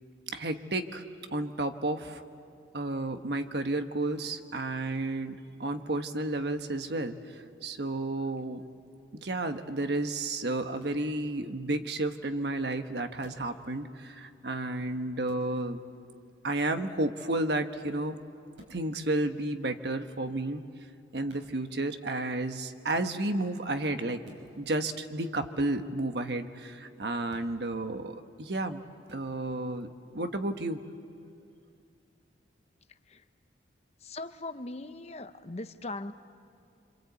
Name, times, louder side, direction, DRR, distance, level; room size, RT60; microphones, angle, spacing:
voice 1, 0.3-1.0 1.3-2.2 2.7-8.6 9.1-15.8 16.4-18.2 18.7-20.6 21.1-24.2 24.6-28.8 29.1-29.9 30.1-30.8, right 2 dB, 65° right, 7 dB, 1.2 m, -32 dB
sound 1, 10.8-11.0 13.2-13.5 15.2-15.5 17.3-17.5 18.5-18.8 21.3-21.5 24.2-24.5 27.2-27.5 29.1-29.3, equal, 85° right, 6.1 m, -53 dB
voice 2, 34.0-36.1, left 2 dB, 35° left, 10 dB, 0.8 m, -39 dB
26.5 x 26.5 x 8.3 m, 2.4 s
head